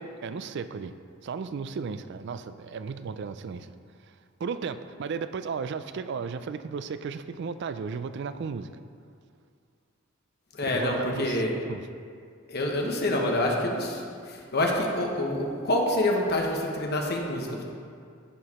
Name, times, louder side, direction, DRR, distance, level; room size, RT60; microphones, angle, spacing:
voice 1, 0.2-0.9 1.2-3.7 4.4-8.7 10.6-11.9, right 5 dB, 55° right, 11 dB, 0.3 m, -34 dB
voice 2, 10.6-11.5 12.5-17.6, left 1 dB, 50° left, 0 dB, 1.2 m, -27 dB
14.0 x 4.7 x 4.3 m, 2.3 s
head